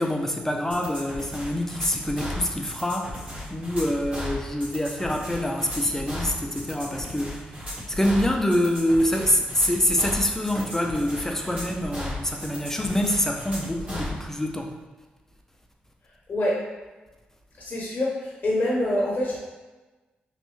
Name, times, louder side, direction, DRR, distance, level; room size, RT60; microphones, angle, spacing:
voice 1, 0.0-7.6 7.9-14.8, left 1 dB, 10° left, 1 dB, 0.6 m, -26 dB
sound 1, 0.7-14.2, left 1 dB, 40° right, 1.5 m, -35 dB
voice 2, 17.6-19.4, left 1 dB, 50° left, -5 dB, 0.9 m, -25 dB
3.1 x 2.5 x 3.2 m, 1.2 s
supercardioid pair, 45°, 4 cm